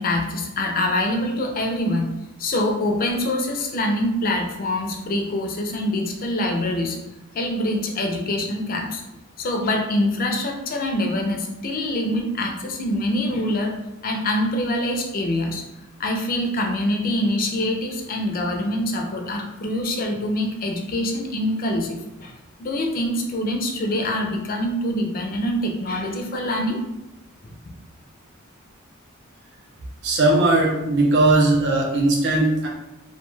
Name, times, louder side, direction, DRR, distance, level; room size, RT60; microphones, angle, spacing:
voice 1, 0.0-2.1 2.4-7.0 7.3-9.0 9.4-13.7 14.0-15.6 16.0-22.3 22.6-26.8, left 1 dB, 45° left, 2 dB, 0.4 m, -25 dB
voice 2, 30.0-32.7, right 2 dB, 55° right, -2 dB, 0.6 m, -18 dB
2.2 x 2.2 x 3.1 m, 0.93 s
head